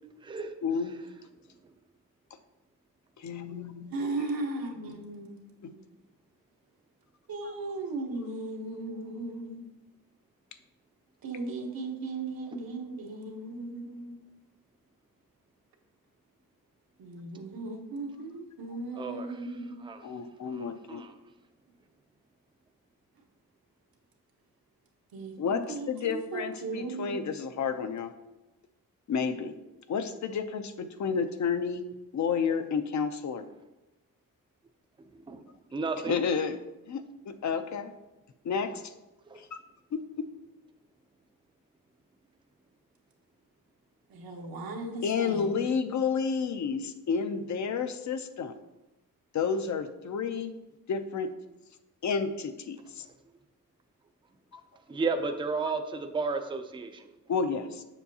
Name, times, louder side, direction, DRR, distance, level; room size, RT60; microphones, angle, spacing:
voice 1, 0.6-1.0 3.2-3.9 5.6-5.7 7.4-7.5 20.0-21.0 25.4-28.1 29.1-29.5 29.9-31.8 32.1-33.4 36.1-36.6 36.9-37.9 38.4-38.9 39.4-39.6 39.9-40.0 45.0-48.5 49.3-50.6 50.9-51.3 52.0-53.0 54.5-54.6 57.3-57.8, left 6 dB, 55° left, 9 dB, 0.5 m, -31 dB
voice 2, 3.9-5.4 5.7-5.8 7.3-9.6 11.2-14.2 17.0-19.9 25.1-27.2 44.1-45.6, right 2 dB, 80° right, 1 dB, 1.1 m, -37 dB
voice 3, 19.0-19.3 19.8-20.0 20.5-21.1 35.3-35.4 35.7-36.2 39.3-39.4 54.9-57.0, right 4 dB, 15° right, 7 dB, 0.4 m, -32 dB
7.2 x 6.2 x 2.7 m, 1.0 s
wide cardioid pair, 120°, 35 cm